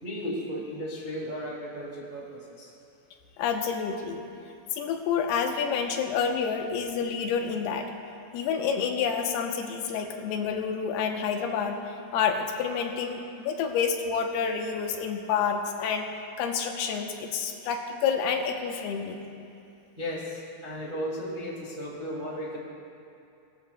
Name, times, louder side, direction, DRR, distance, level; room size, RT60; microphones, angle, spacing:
voice 1, 0.0-2.7 20.0-22.6, equal, 40° right, -5 dB, 0.6 m, -35 dB
voice 2, 3.4-4.2 4.7-7.9 8.3-16.1 16.4-19.3, left 6 dB, 85° left, 3 dB, 2.8 m, -29 dB
20.0 x 13.5 x 2.2 m, 2.6 s
omnidirectional pair, 4.4 m